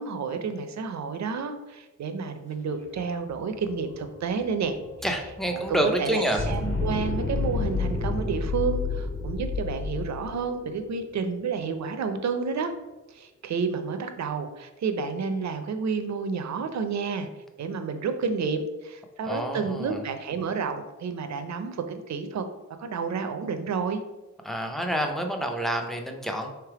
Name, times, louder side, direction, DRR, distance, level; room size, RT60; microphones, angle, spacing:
voice 1, 0.0-4.8 5.5-12.7 13.1-17.3 17.6-22.4 22.8-24.0, right 5 dB, 65° right, 8 dB, 0.5 m, -30 dB
sound 1, 3.0-3.1 3.3-11.5, left 4 dB, 40° left, 1.4 m, -31 dB
voice 2, 5.0-6.4 19.2-20.0 24.4-26.5, right 1 dB, ahead, 3 dB, 0.4 m, -28 dB
3.4 x 3.3 x 4.7 m, 1.1 s
wide cardioid pair, 160°, 30 cm